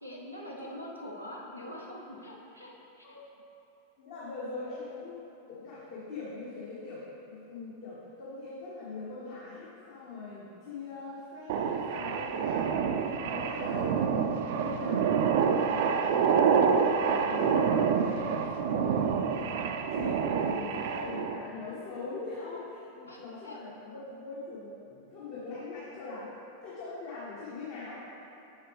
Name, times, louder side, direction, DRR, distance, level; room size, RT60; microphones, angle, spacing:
voice 1, 0.0-3.2 23.1-23.6, equal, 85° left, -3 dB, 0.8 m, -44 dB
voice 2, 0.5-0.9 3.0-3.2 4.0-26.3 26.6-28.0, left 3 dB, 55° left, -8 dB, 1.2 m, -42 dB
sound 1, 11.5-21.4, right 6 dB, 50° right, 0.3 m, -27 dB
6.9 x 6.3 x 3.4 m, 3.0 s
figure-of-eight pair, 90°, 0 cm